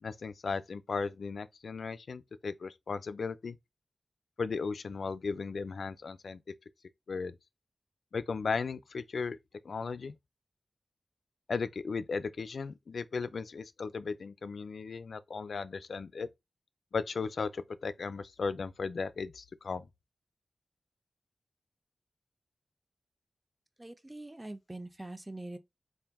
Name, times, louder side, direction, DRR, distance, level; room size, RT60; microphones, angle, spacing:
voice 1, 0.0-3.6 4.4-6.4 7.1-7.4 8.1-9.4 9.6-10.2 11.5-16.3 16.9-19.9, left 4 dB, 75° left, 0.3 m, -36 dB
voice 2, 23.8-25.6, right 2 dB, 15° right, 0.6 m, -43 dB
3.7 x 2.6 x 3.5 m
wide cardioid pair, 80°, 0 cm